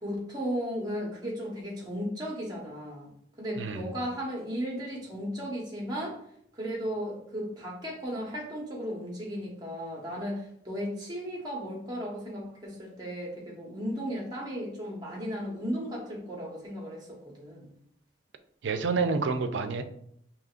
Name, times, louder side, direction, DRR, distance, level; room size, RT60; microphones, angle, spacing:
voice 1, 0.0-3.1 3.4-6.2 6.5-17.7, equal, 20° right, -2 dB, 1.1 m, -35 dB
voice 2, 18.6-19.8, right 4 dB, 85° right, 8 dB, 0.4 m, -28 dB
5.0 x 2.9 x 2.4 m, 0.69 s
head